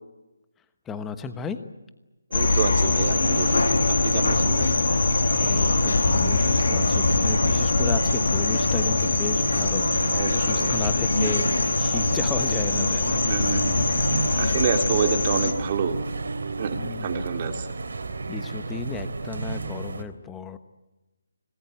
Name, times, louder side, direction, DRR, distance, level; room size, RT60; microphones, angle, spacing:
voice 1, 0.9-1.6 5.4-11.4 11.8-13.2 14.4-14.5 15.0-15.1 16.7-17.2 18.3-20.6, left 6 dB, 10° left, 10 dB, 1.1 m, -34 dB
Noite no Curiachito, 2.3-15.5, left 3 dB, 70° left, 2.8 m, -23 dB
voice 2, 2.3-4.8 10.1-10.8 13.3-13.8 14.3-16.0 16.6-17.7, right 6 dB, 35° right, 5 dB, 2.7 m, -28 dB
sound 1, 3.0-20.0, right 3 dB, 70° right, 3.3 m, -32 dB
25.5 x 19.0 x 9.4 m, 1.0 s
figure-of-eight pair, 160°, 0 cm